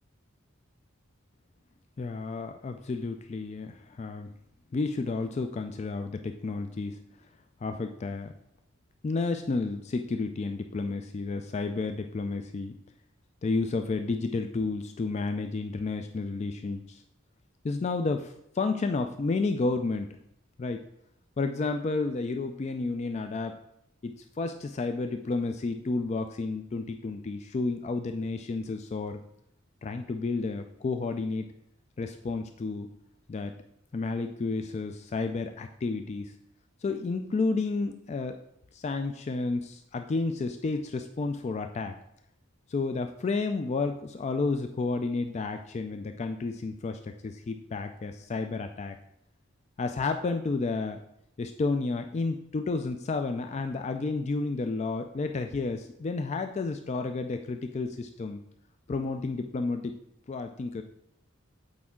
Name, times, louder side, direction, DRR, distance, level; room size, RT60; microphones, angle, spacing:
voice 1, 2.0-4.3 4.7-7.0 7.6-8.3 9.0-12.8 13.4-17.0 17.6-20.1 20.6-20.8 21.4-23.6 24.0-29.2 29.8-31.5 32.0-32.9 33.3-33.5 33.9-36.3 36.8-38.4 38.7-42.0 42.7-49.0 49.8-51.0 51.4-58.4 58.9-60.0 60.3-60.8, left 3 dB, 35° left, 6 dB, 0.3 m, -31 dB
8.5 x 4.7 x 3.6 m, 0.75 s
head